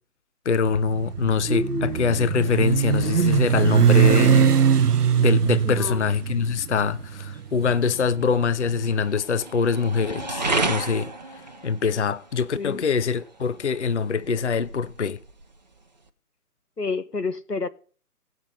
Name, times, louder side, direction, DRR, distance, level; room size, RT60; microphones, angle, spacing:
voice 1, 0.5-4.6 5.2-15.2, left 5 dB, 50° left, 0.5 m, -24 dB
sound 1, 0.6-16.1, right 3 dB, 30° right, 0.7 m, -36 dB
Motorcycle, 0.7-8.9, right 8 dB, 80° right, 0.6 m, -21 dB
voice 2, 1.5-2.1 5.6-6.0 12.5-12.8 16.8-17.7, left 3 dB, 90° left, 1.2 m, -29 dB
17.0 x 6.0 x 6.8 m
figure-of-eight pair, 145°, 46 cm